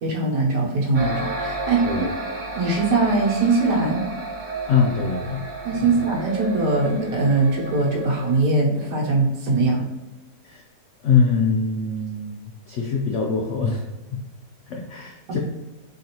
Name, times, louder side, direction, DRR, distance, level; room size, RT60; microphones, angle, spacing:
voice 1, 0.0-1.9 2.6-4.0 5.6-9.9, right 3 dB, 70° right, -2 dB, 1.4 m, -21 dB
sound 1, 0.9-8.4, right 2 dB, 90° right, 0.4 m, -32 dB
voice 2, 4.7-5.4 5.8-6.0 10.4-10.6 11.0-13.8 14.1-14.2 14.7-15.4, left 5 dB, 85° left, -1 dB, 0.6 m, -23 dB
3.8 x 3.2 x 2.9 m, 1.1 s
omnidirectional pair, 1.9 m